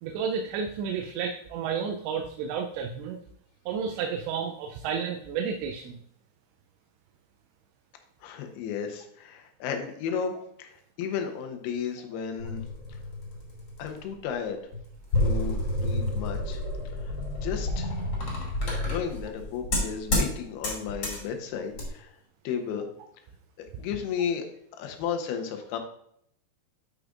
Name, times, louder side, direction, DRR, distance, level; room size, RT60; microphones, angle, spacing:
voice 1, 0.0-3.2 3.7-6.0, right 6 dB, 85° right, 4 dB, 2.8 m, -31 dB
voice 2, 8.2-12.6 13.8-14.6 15.2-16.6 17.0-17.2 17.4-17.9 18.9-22.1 22.4-22.9 23.6-24.4 24.8-25.8, left 7 dB, 75° left, 5 dB, 2.7 m, -33 dB
sound 1, 12.4-14.0 14.7-20.3 20.6-21.2 21.7-21.9, left 1 dB, 35° left, 2.2 m, -29 dB
12.0 x 4.9 x 2.4 m, 0.71 s
omnidirectional pair, 4.9 m